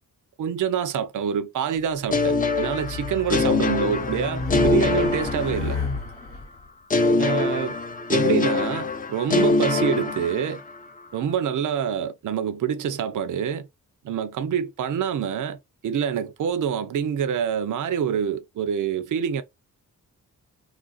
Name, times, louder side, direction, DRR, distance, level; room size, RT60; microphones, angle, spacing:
voice 1, 0.4-5.8 7.2-7.8 8.1-10.6 11.1-13.7 14.0-19.4, right 8 dB, 65° right, 0.5 m, -26 dB
Race car auto racing, 2.1-6.5, left 3 dB, 40° left, 0.9 m, -31 dB
sound 1, 2.1-6.0 6.9-10.8, left 3 dB, 25° left, 0.4 m, -24 dB
3.2 x 2.5 x 2.3 m
wide cardioid pair, 110°, 33 cm